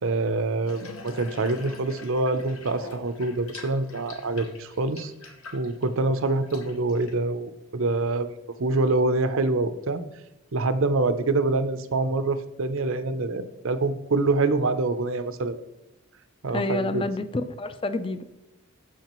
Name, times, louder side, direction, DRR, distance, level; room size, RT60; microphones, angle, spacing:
voice 1, 0.0-5.1 5.5-8.3 8.6-10.0 10.5-15.6 16.4-17.0, right 2 dB, 60° right, 11 dB, 0.6 m, -25 dB
Water tap faucet / Bathtub (filling or washing), 0.7-7.2, left 3 dB, 65° left, 1.1 m, -44 dB
voice 2, 16.5-18.2, left 2 dB, 25° left, 11 dB, 0.4 m, -28 dB
13.5 x 4.8 x 3.0 m, 0.93 s
head